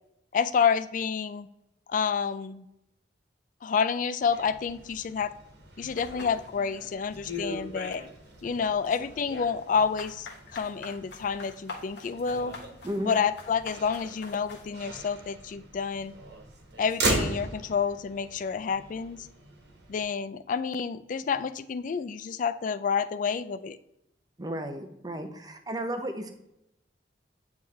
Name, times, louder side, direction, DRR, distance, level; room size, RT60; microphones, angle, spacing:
voice 1, 0.3-1.5 1.9-2.7 3.6-5.3 5.8-8.0 8.4-12.6 13.0-16.1 16.8-19.3 19.9-23.8, left 6 dB, 45° left, 13 dB, 0.3 m, -29 dB
Motor vehicle (road), 4.2-20.0, right 2 dB, 60° right, 1.2 m, -39 dB
dirt footsteps, 6.0-6.9 7.2-8.1 8.4-14.7, left 3 dB, 65° left, 1.3 m, -41 dB
voice 2, 12.8-13.2 24.4-26.3, right 1 dB, 20° right, 6 dB, 0.7 m, -34 dB
8.8 x 3.5 x 3.2 m, 0.85 s
head